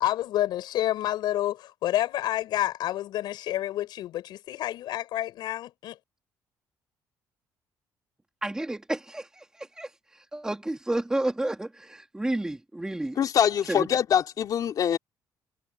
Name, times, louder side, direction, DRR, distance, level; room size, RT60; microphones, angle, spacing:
voice 1, 0.0-6.0, left 13 dB, 80° left, 7.5 m, -29 dB
voice 2, 8.4-13.2 13.7-13.9, right 1 dB, 10° right, 3.1 m, -31 dB
voice 3, 13.2-15.0, left 9 dB, 55° left, 3.0 m, -24 dB
cardioid pair, 110°, 7 cm